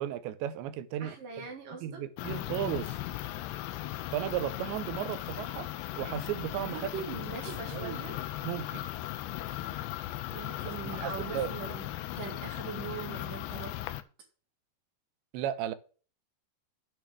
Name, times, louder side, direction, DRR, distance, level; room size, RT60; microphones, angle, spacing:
voice 1, 0.0-1.2 1.8-3.0 4.1-5.7 6.0-6.9 7.5-8.0 8.4-8.9 10.8-11.5 15.3-15.7, right 11 dB, 85° right, 3.1 m, -35 dB
voice 2, 1.0-2.0 6.7-8.2 10.3-11.9 12.1-13.8, right 6 dB, 55° right, 3.3 m, -41 dB
sound 1, 2.2-14.0, left 15 dB, 90° left, 2.9 m, -37 dB
8.7 x 6.2 x 6.1 m
omnidirectional pair, 5.1 m